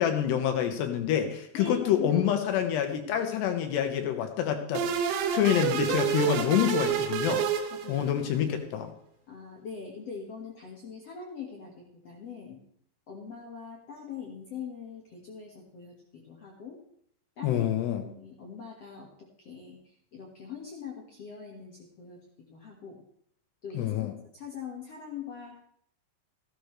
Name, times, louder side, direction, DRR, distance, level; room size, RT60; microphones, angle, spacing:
voice 1, 0.0-4.9 5.3-7.4 7.9-8.9 17.4-18.0 23.7-24.1, left 10 dB, 75° left, 6 dB, 3.2 m, -27 dB
voice 2, 1.5-2.4 7.7-8.1 9.3-12.6 13.1-16.8 17.4-19.1 19.4-19.8 20.1-22.2 22.5-23.0 23.6-25.6, left 6 dB, 55° left, -2 dB, 1.7 m, -42 dB
sound 1, 4.7-8.3, right 8 dB, 85° right, 3.4 m, -29 dB
15.5 x 13.0 x 3.3 m, 0.66 s
omnidirectional pair, 5.2 m